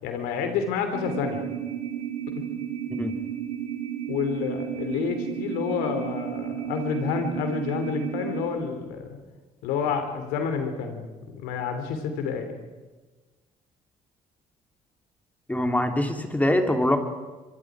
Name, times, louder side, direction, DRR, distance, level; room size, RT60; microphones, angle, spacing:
voice 1, 0.0-1.4 2.3-2.4 4.1-9.2 9.6-12.5, left 6 dB, 85° left, 7 dB, 3.0 m, -29 dB
sound 1, 0.9-8.5, right 9 dB, 70° right, 7.5 m, -33 dB
voice 2, 15.5-17.0, left 1 dB, 10° left, 5 dB, 3.2 m, -23 dB
25.5 x 24.0 x 4.9 m, 1.3 s
supercardioid pair, 60°, 15 cm